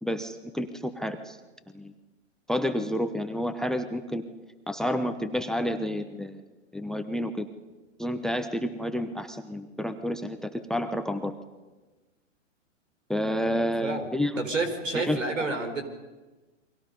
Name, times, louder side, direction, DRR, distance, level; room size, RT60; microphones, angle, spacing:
voice 1, 0.0-1.4 1.7-1.9 2.5-4.2 4.7-6.4 6.7-7.5 8.0-11.3 13.1-14.3 14.9-15.2, equal, ahead, 10 dB, 0.9 m, -30 dB
voice 2, 13.4-14.1 14.4-15.8, right 3 dB, 85° right, 8 dB, 4.7 m, -30 dB
30.0 x 24.0 x 5.4 m, 1.2 s
hypercardioid pair, 120°, 38 cm